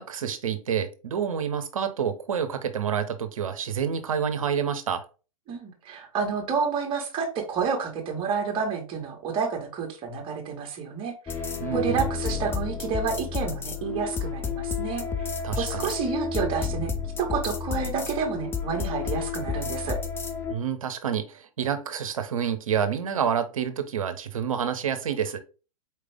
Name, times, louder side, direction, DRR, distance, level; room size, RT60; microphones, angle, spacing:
voice 1, 0.0-5.0 11.6-12.1 15.4-15.9 20.5-25.4, right 8 dB, 70° right, 0.9 m, -28 dB
voice 2, 5.5-11.4 11.7-20.0, right 6 dB, 30° right, 1.6 m, -30 dB
sound 1, 11.3-20.5, left 6 dB, 10° left, 0.6 m, -31 dB
4.5 x 3.3 x 3.5 m
figure-of-eight pair, 105°, 18 cm